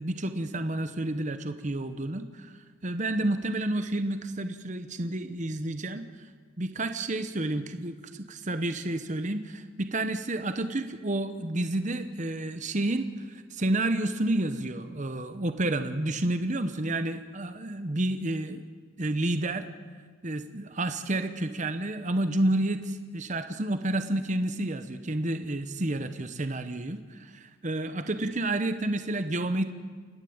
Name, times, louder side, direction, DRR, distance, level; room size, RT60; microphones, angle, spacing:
voice 1, 0.0-6.3 6.6-18.6 19.0-19.7 20.2-29.7, right 1 dB, 35° right, 9 dB, 0.9 m, -30 dB
29.0 x 11.5 x 8.7 m, 1.5 s
head